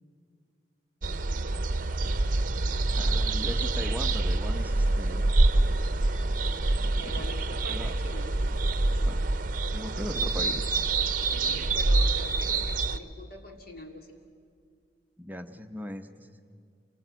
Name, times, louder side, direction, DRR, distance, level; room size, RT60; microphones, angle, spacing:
sound 1, 1.0-13.0, right 2 dB, 50° right, 0.8 m, -26 dB
voice 1, 2.9-5.2 6.8-7.2 7.6-8.0 9.1-9.2 9.7-10.7 15.2-16.5, left 1 dB, 10° right, 7 dB, 0.8 m, -39 dB
voice 2, 7.0-8.4 11.3-14.1, equal, 60° left, 3 dB, 2.9 m, -44 dB
27.5 x 19.5 x 9.1 m, 2.1 s
head